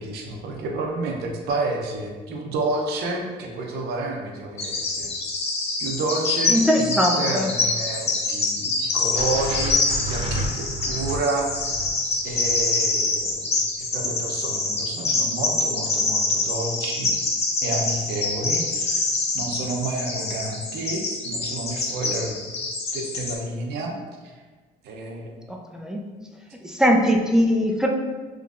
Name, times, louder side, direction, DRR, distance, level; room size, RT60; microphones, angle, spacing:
voice 1, 0.0-5.1 5.8-9.8 10.0-11.7 12.2-13.6 13.9-17.2 17.6-19.0 19.3-22.4 22.9-23.9 24.2-24.3 24.8-25.4, right 2 dB, 75° right, 1 dB, 0.6 m, -30 dB
Bird vocalization bird call bird song, 4.6-23.3, left 3 dB, 40° left, 0.7 m, -26 dB
voice 2, 6.5-7.5 25.5-26.1 26.8-27.9, equal, 5° right, 0 dB, 0.4 m, -20 dB
sound 1, 9.1-13.3, right 1 dB, 35° right, 0.8 m, -32 dB
3.7 x 3.1 x 2.4 m, 1.4 s
cardioid pair, 110°, 17 cm